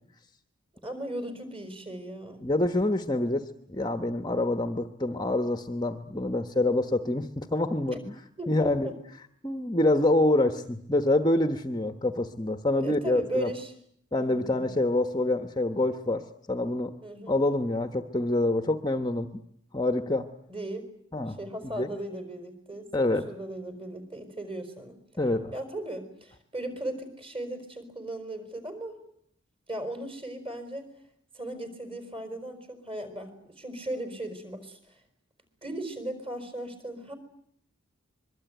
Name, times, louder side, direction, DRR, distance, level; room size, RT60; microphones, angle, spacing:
voice 1, 0.8-2.5 7.9-8.0 8.4-9.0 12.8-13.7 14.2-14.7 17.0-17.4 20.5-20.9 21.3-22.9 23.3-25.0 25.5-28.9 29.7-30.9 31.3-35.0 35.6-37.1, right 1 dB, 25° right, 7 dB, 4.9 m, -37 dB
voice 2, 2.4-3.4 3.7-8.1 8.5-8.9 9.4-13.5 14.1-16.9 17.3-19.3 19.7-20.3 21.1-21.4 21.6-21.9 22.9-23.3 25.2-25.5, left 2 dB, 20° left, 8 dB, 1.0 m, -26 dB
25.0 x 23.0 x 9.3 m, 0.69 s
head